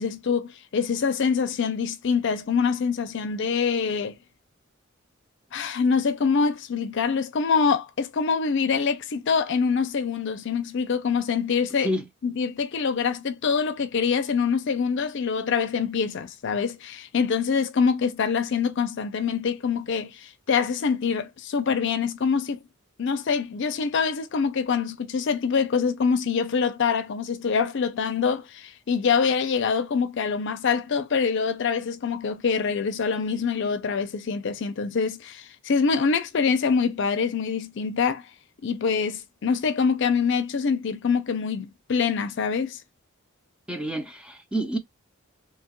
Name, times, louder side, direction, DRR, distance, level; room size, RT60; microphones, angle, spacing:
voice 1, 0.0-4.2 5.5-11.9 12.2-22.6 23.0-38.2 38.6-42.8, left 5 dB, 60° left, 0.5 m, -25 dB
voice 2, 43.7-44.8, right 1 dB, 5° right, 0.5 m, -28 dB
2.8 x 2.3 x 2.8 m
head